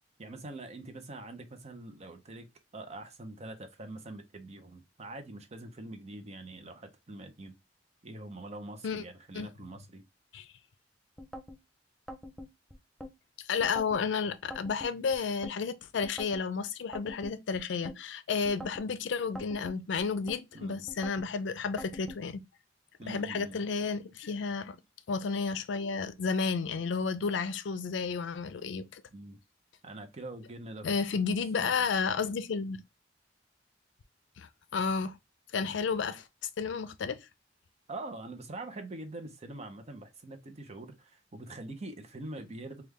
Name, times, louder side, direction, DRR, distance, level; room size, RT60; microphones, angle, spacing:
voice 1, 0.2-7.5 8.0-10.0 20.5-20.9 23.0-23.6 29.1-29.4 29.8-30.9 31.6-31.9 35.6-35.8 37.9-42.8, right 2 dB, 35° right, 0.6 m, -44 dB
sound 1, 11.2-11.6 12.1-13.1 13.6-14.0 14.5-15.6 16.0-16.4 16.9-18.0 18.4-18.9 19.3-20.4 20.9-21.3 21.8-22.2, equal, ahead, 0.4 m, -45 dB
voice 2, 13.4-22.4 23.1-24.8 25.1-29.0 30.8-32.8 34.4-35.2 35.5-36.2 36.6-37.3, left 5 dB, 75° left, 0.4 m, -32 dB
3.3 x 2.3 x 3.4 m
head